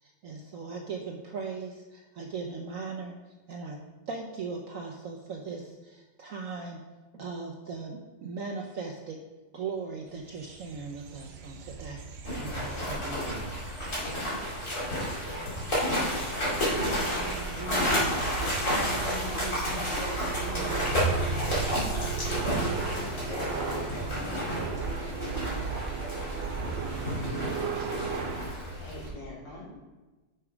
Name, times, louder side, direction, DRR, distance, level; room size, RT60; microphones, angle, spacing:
voice 1, 0.0-3.1 3.5-3.8 4.1-6.8 7.1-9.2 9.5-13.3, right 4 dB, 65° right, 2 dB, 0.9 m, -38 dB
sound 1, 10.2-28.5, right 5 dB, 85° right, 0.5 m, -36 dB
sound 2, 12.2-29.1, equal, 45° left, 2.8 m, -31 dB
sound 3, 12.5-12.9 13.2-13.3 13.6-13.7 14.0-14.1 14.3-14.4 14.7-15.1 15.5-15.9 16.2-16.3 16.6-16.7 17.0-17.1 17.3-17.4 17.7-18.1 18.5-18.9 19.2-19.3 19.6-19.7 20.0-20.1 20.3-20.4 20.7-21.1 21.5-21.9 22.2-22.3 22.6-22.7 23.0-23.1 23.3-23.4 23.7-24.1, left 2 dB, 60° left, 2.2 m, -43 dB
voice 2, 15.3-17.2 17.4-20.9 21.2-21.4 21.9-26.2, left 3 dB, 20° left, -3 dB, 1.6 m, -44 dB
voice 3, 27.2-28.5 28.8-29.7, left 2 dB, 80° left, -7 dB, 3.4 m, -45 dB
6.5 x 5.8 x 5.0 m, 1.2 s
omnidirectional pair, 1.9 m